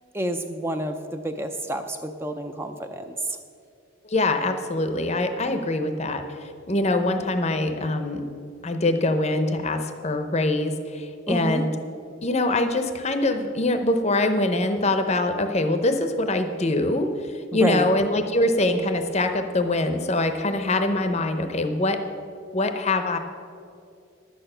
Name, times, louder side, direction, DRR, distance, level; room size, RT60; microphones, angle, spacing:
voice 1, 0.1-3.4 11.3-11.7 17.5-17.9, right 1 dB, 10° right, 6 dB, 0.4 m, -29 dB
voice 2, 4.1-6.2 6.7-8.2 8.6-11.7 12.2-17.1 17.5-22.0 22.5-23.2, left 2 dB, 30° left, 7 dB, 0.7 m, -23 dB
11.5 x 9.0 x 5.6 m, 2.4 s
head